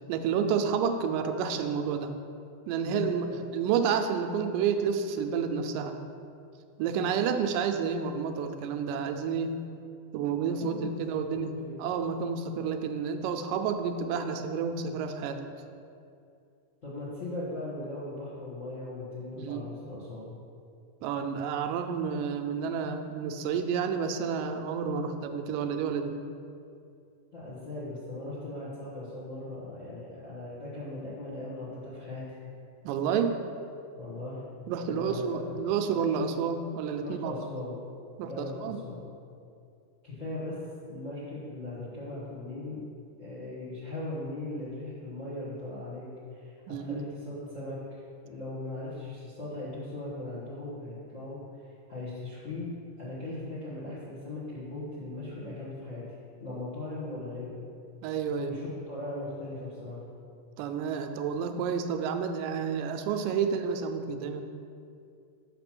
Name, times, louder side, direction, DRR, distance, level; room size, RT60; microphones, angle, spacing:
voice 1, 0.1-2.1 2.7-6.0 6.8-9.6 10.1-11.5 11.8-15.4 19.3-19.6 21.0-26.2 32.8-33.4 34.7-37.4 38.2-38.8 46.7-47.1 58.0-58.5 60.6-64.5, right 6 dB, 85° right, 7 dB, 2.1 m, -30 dB
voice 2, 3.3-3.6 10.4-11.7 16.8-20.3 27.3-32.4 33.9-34.4 34.8-35.5 36.9-37.8 38.2-39.1 40.0-40.6 40.8-42.8 43.2-52.7 53.0-56.0 56.4-57.6 58.3-60.0, left 2 dB, 40° left, -9 dB, 1.0 m, -39 dB
5.9 x 5.5 x 6.0 m, 2.5 s
omnidirectional pair, 3.8 m